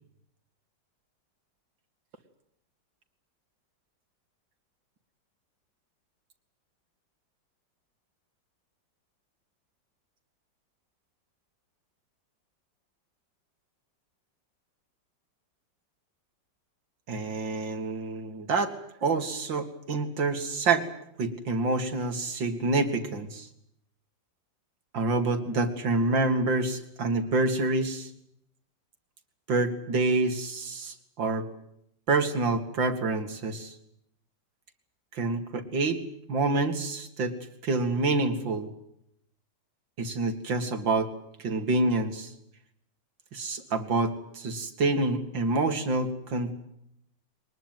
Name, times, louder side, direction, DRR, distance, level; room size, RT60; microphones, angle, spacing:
voice 1, 17.1-18.7 19.0-20.9 21.2-23.5 24.9-28.1 29.5-31.5 32.1-33.7 35.1-36.0 36.3-37.3 37.6-38.7 40.0-41.1 41.4-42.3 43.3-46.5, right 3 dB, 80° right, 6 dB, 3.0 m, -27 dB
23.0 x 20.0 x 9.2 m, 0.75 s
omnidirectional pair, 2.0 m